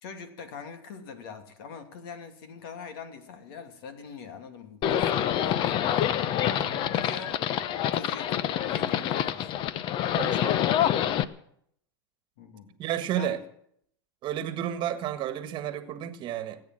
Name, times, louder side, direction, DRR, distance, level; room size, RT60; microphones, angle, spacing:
voice 1, 0.0-5.9 6.9-7.3 7.9-9.6 12.4-12.8 13.2-13.4, left 5 dB, 65° left, 7 dB, 2.6 m, -42 dB
Livestock farm animals working animals, 4.8-11.2, left 10 dB, 40° left, 0.8 m, -26 dB
voice 2, 6.6-6.9 10.2-10.5 12.8-13.4 14.2-16.6, right 11 dB, 40° right, 11 dB, 1.6 m, -32 dB
19.0 x 8.8 x 7.7 m, 0.69 s
supercardioid pair, 125°, 13 cm